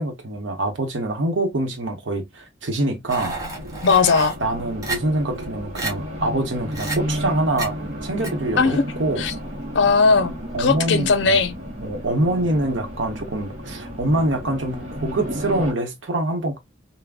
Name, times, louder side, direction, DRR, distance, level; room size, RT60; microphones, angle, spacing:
voice 1, 0.0-3.4 4.4-7.8 8.0-9.2 10.5-11.3 11.8-16.6, right 1 dB, 75° right, 0.8 m, -25 dB
sound 1, 3.1-4.4 4.8-5.0 5.4-5.5 5.8-5.9 6.7-7.0 7.6-7.7 8.2-8.3, right 3 dB, 20° right, 0.9 m, -29 dB
Race car auto racing, 3.1-15.7, equal, 35° right, 1.3 m, -33 dB
voice 2, 3.8-4.3 8.6-8.8 9.2-9.3 9.7-10.3 10.6-11.6, left 4 dB, 70° left, 0.5 m, -18 dB
3.5 x 2.1 x 2.3 m
head